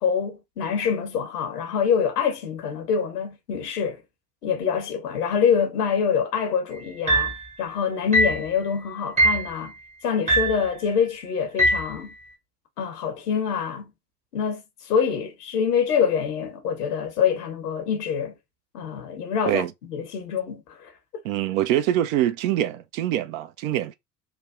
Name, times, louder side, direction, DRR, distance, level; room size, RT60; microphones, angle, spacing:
voice 1, 0.0-4.0 4.4-7.3 7.6-9.8 10.0-12.1 12.8-13.9 14.3-18.4 18.7-19.6 19.9-20.9, left 7 dB, 75° left, 0.9 m, -25 dB
sound 1, 7.1-7.4 8.1-8.5 9.2-9.5 10.3-10.6 11.6-11.9, right 1 dB, 15° right, 0.8 m, -21 dB
voice 2, 21.2-23.9, right 12 dB, 60° right, 0.5 m, -24 dB
3.2 x 2.2 x 2.3 m
figure-of-eight pair, 60°, 47 cm